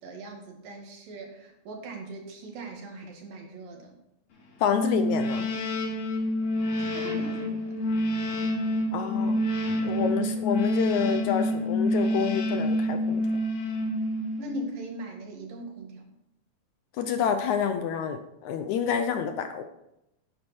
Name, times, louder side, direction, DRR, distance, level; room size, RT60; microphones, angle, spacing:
voice 1, 0.0-4.0 6.8-7.8 14.4-16.1, right 1 dB, 80° right, 1 dB, 3.9 m, -40 dB
voice 2, 4.6-5.5 8.9-9.4 9.8-13.3 17.0-19.6, left 7 dB, 75° left, 8 dB, 1.9 m, -28 dB
sound 1, 4.7-14.6, left 1 dB, 55° left, 3.0 m, -27 dB
11.0 x 9.9 x 4.4 m, 0.83 s
omnidirectional pair, 3.9 m